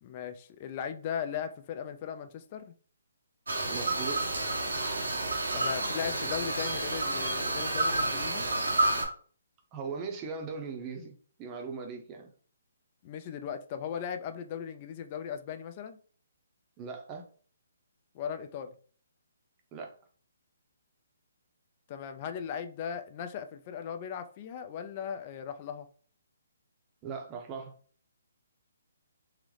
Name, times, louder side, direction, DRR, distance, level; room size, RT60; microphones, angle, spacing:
voice 1, 0.0-2.7 5.5-8.5 13.0-16.0 18.1-18.8 21.9-25.9, left 8 dB, 35° left, 0.3 m, -38 dB
sound 1, 3.5-9.0, right 2 dB, 90° right, 0.9 m, -30 dB
voice 2, 3.7-4.3 9.7-12.3 16.8-17.2 19.7-19.9 27.0-27.7, right 5 dB, 20° right, 0.6 m, -39 dB
3.7 x 2.0 x 3.1 m
hypercardioid pair, 155°, 0 cm